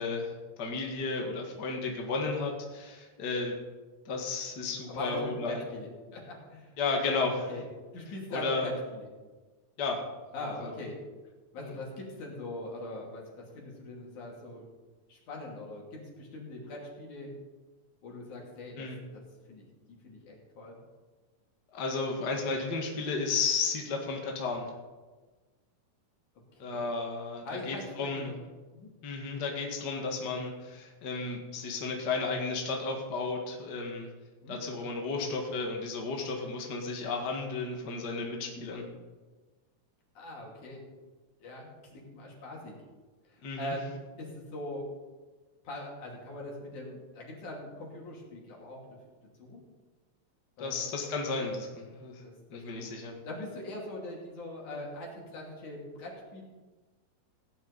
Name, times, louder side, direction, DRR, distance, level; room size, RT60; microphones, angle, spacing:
voice 1, 0.0-3.6 4.1-5.6 6.8-7.5 8.3-8.7 9.8-10.0 10.6-10.7 11.6-11.7 18.8-19.0 21.7-24.7 26.6-28.3 29.0-34.1 34.5-38.8 43.4-43.7 50.6-52.2 52.5-53.1, left 4 dB, 40° left, 1 dB, 2.0 m, -33 dB
voice 2, 4.9-6.7 7.5-7.6 7.9-9.1 10.3-11.0 11.5-14.6 15.1-17.3 18.0-18.9 19.5-20.8 26.5-26.8 27.4-28.4 28.7-28.9 34.4-34.6 40.2-40.8 41.4-42.7 43.3-44.9 45.6-48.8 49.4-49.6 50.6-50.8 52.2-53.0 53.2-56.4, left 1 dB, 85° left, -2 dB, 4.2 m, -42 dB
16.5 x 10.5 x 4.1 m, 1.3 s
omnidirectional pair, 3.3 m